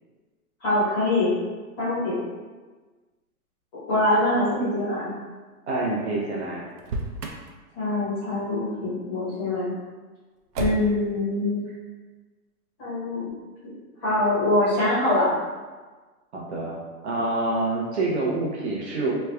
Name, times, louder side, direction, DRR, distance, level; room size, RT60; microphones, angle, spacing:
voice 1, 0.6-1.3 1.8-2.2 3.9-5.1 7.8-9.7 10.6-11.6 12.8-13.3 13.6-13.7 14.0-15.3, left 1 dB, 15° left, -10 dB, 0.7 m, -24 dB
voice 2, 5.7-6.6 16.3-16.8 17.0-19.1, right 2 dB, 45° right, -3 dB, 0.6 m, -26 dB
Motor vehicle (road), 6.7-7.5 10.5-11.1, right 2 dB, 90° right, 0.7 m, -31 dB
3.2 x 2.3 x 3.1 m, 1.3 s
hypercardioid pair, 165°, 46 cm